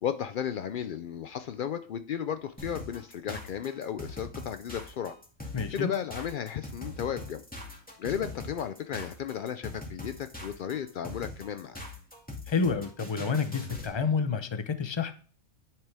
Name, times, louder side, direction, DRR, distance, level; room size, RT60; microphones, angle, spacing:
voice 1, 0.0-5.1 5.7-7.4 8.0-11.8, left 8 dB, 80° left, 9 dB, 0.4 m, -34 dB
sound 1, 2.6-14.0, left 1 dB, 5° left, 2.2 m, -42 dB
voice 2, 5.5-5.9 12.5-15.1, left 5 dB, 30° left, 9 dB, 0.5 m, -29 dB
10.5 x 5.9 x 3.4 m, 0.42 s
omnidirectional pair, 1.4 m